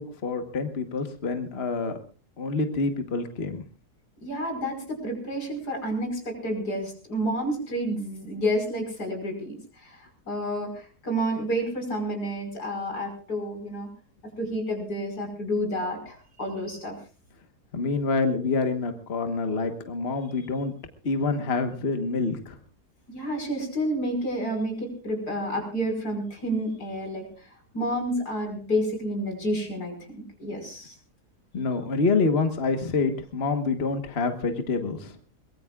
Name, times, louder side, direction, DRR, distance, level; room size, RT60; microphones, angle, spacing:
voice 1, 0.0-2.0 2.4-3.6 17.7-20.7 21.0-22.6 31.5-35.2, left 4 dB, 40° left, 6 dB, 1.5 m, -27 dB
voice 2, 4.2-13.9 14.4-17.0 23.1-27.5 27.7-31.0, equal, 85° left, 3 dB, 6.1 m, -30 dB
23.0 x 21.5 x 2.4 m, 0.38 s
omnidirectional pair, 1.7 m